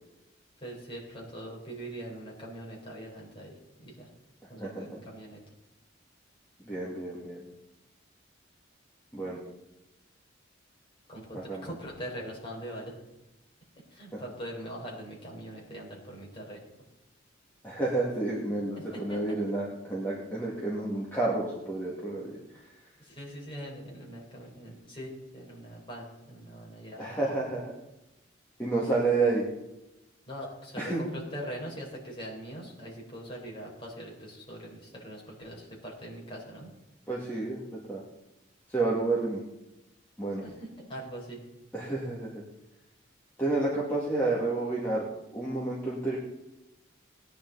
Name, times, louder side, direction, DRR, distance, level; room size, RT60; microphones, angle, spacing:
voice 1, 0.6-4.1 4.5-5.4 11.1-13.0 13.9-16.6 18.7-19.4 23.0-27.3 30.3-36.7 40.4-41.4, equal, 25° left, -3 dB, 4.5 m, -42 dB
voice 2, 6.6-7.5 9.1-9.4 11.3-11.7 14.1-14.2 17.6-22.4 27.0-27.7 28.6-29.5 30.8-31.0 37.1-38.0 38.7-39.4 40.2-40.4 41.7-42.4 43.4-45.0 45.3-46.2, right 2 dB, 10° left, -6 dB, 2.4 m, -30 dB
18.5 x 10.5 x 4.1 m, 0.93 s
head